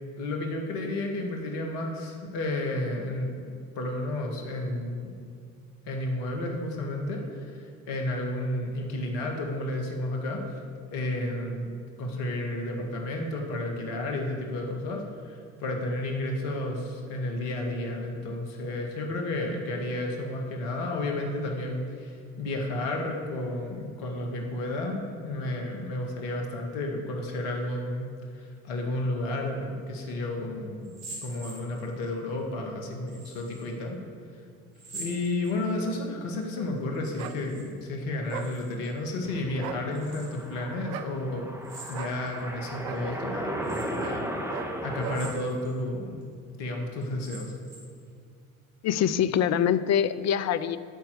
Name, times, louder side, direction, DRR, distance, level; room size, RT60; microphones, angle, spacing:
voice 1, 0.2-5.2 5.8-10.4 10.9-28.1 28.3-34.0 34.9-41.5 41.9-46.3 46.6-47.5, left 1 dB, 65° left, 2 dB, 1.9 m, -32 dB
sound 1, 30.8-32.1 33.1-33.7 34.7-35.9 36.9-37.7 37.9-38.9 39.9-40.5 41.6-42.4 42.9-43.0 43.6-44.1 45.0-45.7 46.2-46.3 47.0-48.0, right 2 dB, 75° right, 3.2 m, -45 dB
sound 2, 37.2-37.4 38.3-38.5 39.5-39.8 40.9-41.1 41.9-42.2 42.8-43.0 44.0-44.2 44.5-44.7 45.0-45.2, right 11 dB, 55° right, 0.7 m, -38 dB
sound 3, 39.3-45.3, right 1 dB, 5° right, 1.4 m, -36 dB
voice 2, 48.8-50.8, left 9 dB, 40° left, 14 dB, 0.5 m, -24 dB
12.5 x 4.4 x 8.2 m, 2.2 s
hypercardioid pair, 70°, 42 cm